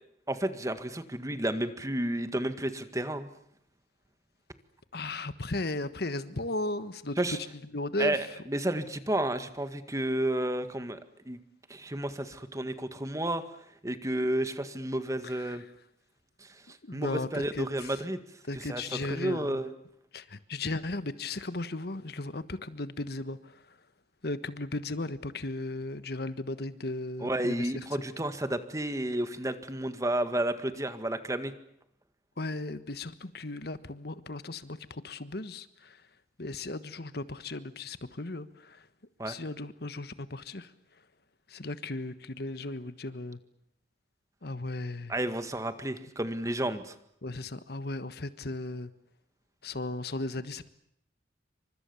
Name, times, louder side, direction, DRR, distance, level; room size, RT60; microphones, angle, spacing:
voice 1, 0.3-3.3 7.2-7.4 8.0-11.0 11.3-11.4 11.7-13.4 13.8-15.6 16.4-16.5 16.9-18.2 18.6-18.8 19.1-19.7 27.2-31.5 39.2-39.4 45.1-47.0, right 1 dB, 20° right, 10 dB, 1.8 m, -31 dB
voice 2, 4.9-7.5 7.7-8.2 15.2-15.6 16.8-17.9 18.5-19.6 20.1-23.6 24.2-27.8 32.4-36.0 36.4-38.8 39.3-40.7 41.5-43.4 44.4-45.1 47.2-48.9 49.6-50.7, left 2 dB, 60° left, 13 dB, 1.4 m, -36 dB
28.5 x 25.5 x 7.1 m, 0.73 s
head